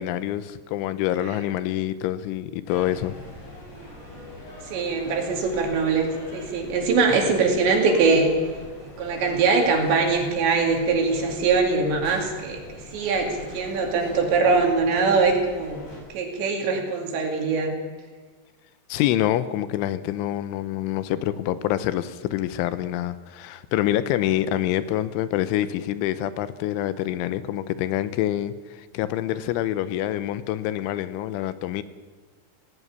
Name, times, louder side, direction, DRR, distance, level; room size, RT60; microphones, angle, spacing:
voice 1, 0.0-3.1 18.9-31.8, left 12 dB, 90° left, 13 dB, 3.3 m, -26 dB
sound 1, 2.7-16.0, left 1 dB, 60° left, 8.8 m, -42 dB
voice 2, 4.7-8.3 9.0-15.8 16.1-17.7, right 4 dB, 70° right, 2 dB, 4.7 m, -22 dB
17.5 x 16.5 x 9.9 m, 1.3 s
omnidirectional pair, 5.4 m